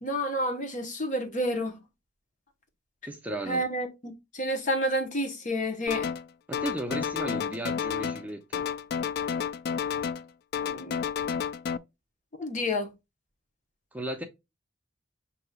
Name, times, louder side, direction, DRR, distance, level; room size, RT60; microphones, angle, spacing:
voice 1, 0.0-1.8 3.5-6.1 10.7-11.1 12.4-12.9, equal, 45° left, 1.1 m, -30 dB
voice 2, 3.0-3.7 6.5-8.6 13.9-14.2, right 1 dB, 10° right, 0.6 m, -35 dB
sound 1, 5.9-6.3 6.5-8.3 8.5-10.3 10.5-11.8, left 7 dB, 60° left, 0.3 m, -31 dB
6.5 x 2.9 x 2.3 m
head